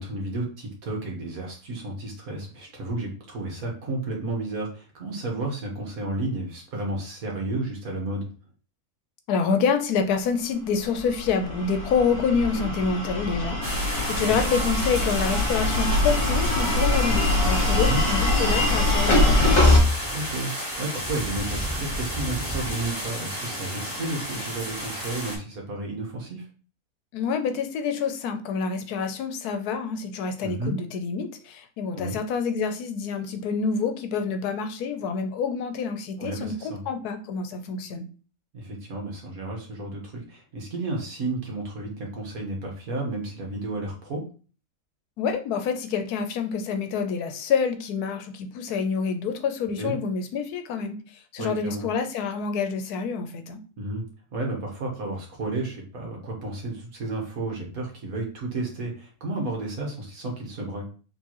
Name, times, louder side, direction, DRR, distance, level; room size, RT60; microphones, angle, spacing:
voice 1, 0.0-8.3 12.5-12.6 14.2-14.4 17.8-18.0 20.1-20.5 20.8-26.4 30.4-30.7 31.9-32.2 36.2-36.8 38.5-44.2 49.8-49.9 51.4-51.8 53.8-54.0 54.3-60.9, right 2 dB, 70° right, 0 dB, 1.7 m, -32 dB
voice 2, 9.3-19.6 27.1-38.1 45.2-51.0 51.3-53.6, left 5 dB, 85° left, 8 dB, 1.2 m, -27 dB
sound 1, 10.9-19.8, left 2 dB, 35° left, 1.6 m, -23 dB
sound 2, 13.6-25.4, equal, 15° right, 1.7 m, -32 dB
4.5 x 3.5 x 3.0 m, 0.38 s
omnidirectional pair, 1.6 m